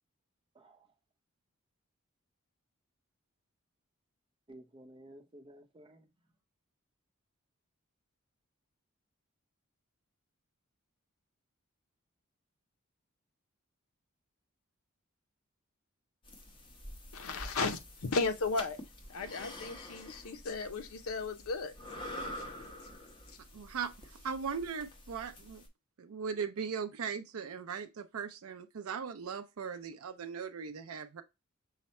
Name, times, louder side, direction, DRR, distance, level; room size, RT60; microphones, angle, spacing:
voice 1, 0.5-0.9 4.5-6.1, right 1 dB, 25° right, 0.7 m, -54 dB
sound 1, 16.2-25.7, left 1 dB, 25° left, 0.9 m, -47 dB
voice 2, 17.1-18.8 19.1-21.7, left 4 dB, 90° left, 0.7 m, -35 dB
voice 3, 23.5-25.6 26.0-31.2, right 6 dB, 85° right, 0.5 m, -39 dB
5.6 x 2.1 x 4.2 m
head